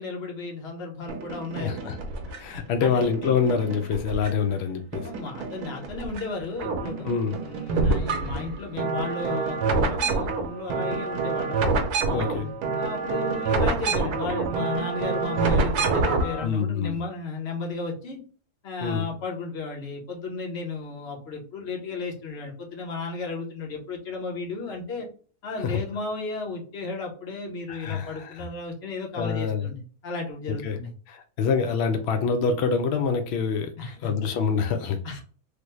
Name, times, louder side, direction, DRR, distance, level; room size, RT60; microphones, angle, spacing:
voice 1, 0.0-1.9 2.8-3.1 5.0-7.1 7.4-11.6 12.0-18.2 18.6-25.1 25.4-30.9 33.8-34.1 35.0-35.2, left 3 dB, 50° left, 1.0 m, -34 dB
sound 1, 1.1-2.6 3.0-4.6 4.9-6.2 6.5-16.4, right 3 dB, 80° right, 1.2 m, -27 dB
voice 2, 1.6-1.9 2.4-5.1 7.0-7.4 12.1-12.5 16.4-17.0 18.8-19.1 25.6-25.8 27.7-28.5 29.2-29.7 30.6-30.8 31.1-33.7 34.0-35.2, left 6 dB, 85° left, 0.5 m, -26 dB
3.3 x 2.2 x 3.0 m
omnidirectional pair, 1.7 m